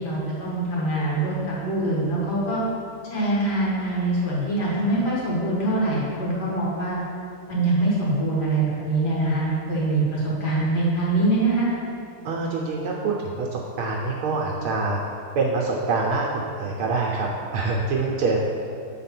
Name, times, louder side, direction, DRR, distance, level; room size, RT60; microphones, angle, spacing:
voice 1, 0.0-2.6 3.1-7.0 7.5-11.7, right 2 dB, 50° left, -7 dB, 2.4 m, -24 dB
voice 2, 12.2-15.0 15.3-18.4, right 3 dB, 75° right, -2 dB, 1.6 m, -25 dB
7.8 x 4.0 x 5.9 m, 2.4 s
omnidirectional pair, 2.4 m